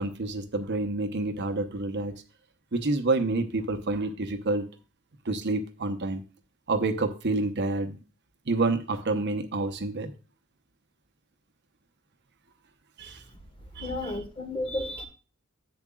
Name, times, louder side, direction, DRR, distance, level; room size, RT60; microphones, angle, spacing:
voice 1, 0.0-2.1 2.7-4.6 5.2-6.2 6.7-8.0 8.5-10.1 13.0-13.2 13.7-14.2, right 2 dB, 55° right, 7 dB, 1.0 m, -28 dB
voice 2, 13.8-15.1, left 1 dB, 25° left, 6 dB, 1.4 m, -32 dB
11.0 x 7.9 x 2.4 m, 0.34 s
head